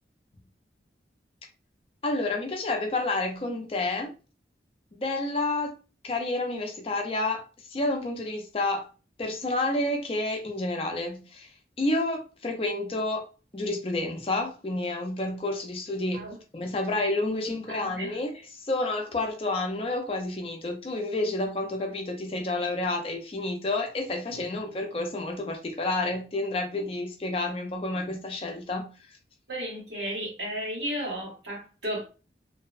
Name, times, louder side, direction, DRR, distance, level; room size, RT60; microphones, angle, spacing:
voice 1, 2.0-4.1 5.0-5.7 6.0-8.9 9.2-11.5 11.8-13.3 13.5-28.9, left 2 dB, 30° left, 0.4 m, -30 dB
voice 2, 17.4-18.1 29.5-32.0, equal, 85° right, 1.3 m, -34 dB
2.6 x 2.1 x 2.3 m
head